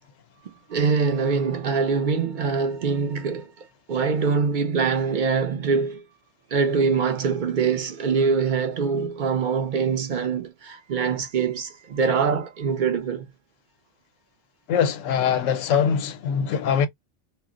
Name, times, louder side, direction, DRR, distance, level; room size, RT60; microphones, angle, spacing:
voice 1, 0.7-6.0 6.5-13.2, right 5 dB, 55° right, 0.5 m, -24 dB
voice 2, 14.7-16.9, left 7 dB, 85° left, 1.0 m, -22 dB
2.3 x 2.0 x 3.7 m
omnidirectional pair, 1.3 m